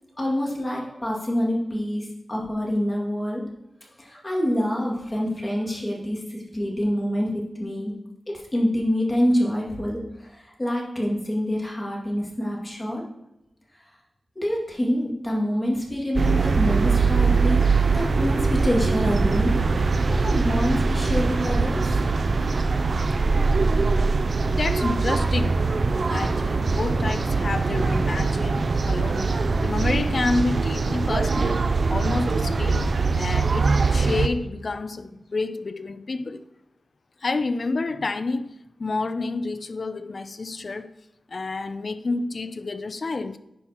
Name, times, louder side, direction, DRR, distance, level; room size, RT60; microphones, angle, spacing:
voice 1, 0.2-3.4 4.0-8.0 8.3-13.1 14.4-19.6 20.0-21.9, equal, 20° left, 2.3 m, -26 dB
sound 1, 16.1-34.3, right 4 dB, 65° right, 0.5 m, -22 dB
voice 2, 24.5-25.7 26.1-32.9 33.1-36.4 37.2-38.5 38.8-40.9 41.3-43.4, left 3 dB, 55° left, 0.5 m, -29 dB
10.0 x 5.6 x 3.0 m
cardioid pair, 65°, 0 cm